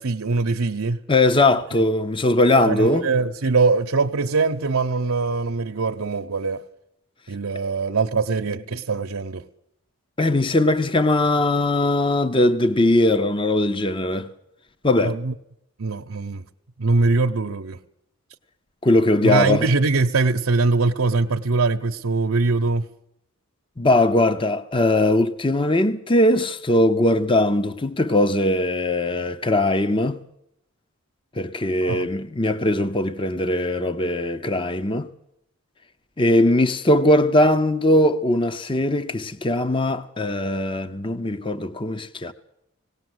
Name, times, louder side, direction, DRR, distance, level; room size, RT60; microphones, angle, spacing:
voice 1, 0.0-1.0 2.6-6.6 7.3-9.4 15.0-15.3 15.8-16.5 16.8-17.8 19.2-22.9 31.8-32.1, right 3 dB, 80° right, 0.8 m, -22 dB
voice 2, 1.1-3.1 10.2-14.3 14.8-15.2 18.8-19.7 23.8-30.2 31.4-35.1 36.2-42.3, left 1 dB, 25° left, 0.7 m, -20 dB
19.0 x 17.5 x 7.9 m
head